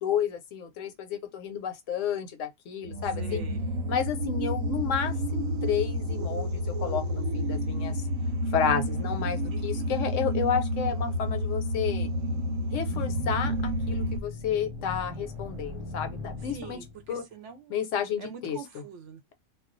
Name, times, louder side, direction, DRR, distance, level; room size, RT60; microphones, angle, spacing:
voice 1, 0.0-3.4 3.9-8.0 8.5-12.1 12.7-16.8 17.1-17.2 17.7-18.6, left 8 dB, 70° left, 0.9 m, -31 dB
sound 1, 2.8-14.2, equal, 90° right, 1.0 m, -30 dB
voice 2, 3.2-3.7 9.5-9.9 16.5-17.7 18.2-19.4, right 7 dB, 70° right, 0.8 m, -44 dB
sound 2, 10.9-17.2, left 2 dB, 25° right, 0.9 m, -41 dB
2.3 x 2.2 x 3.7 m
omnidirectional pair, 1.4 m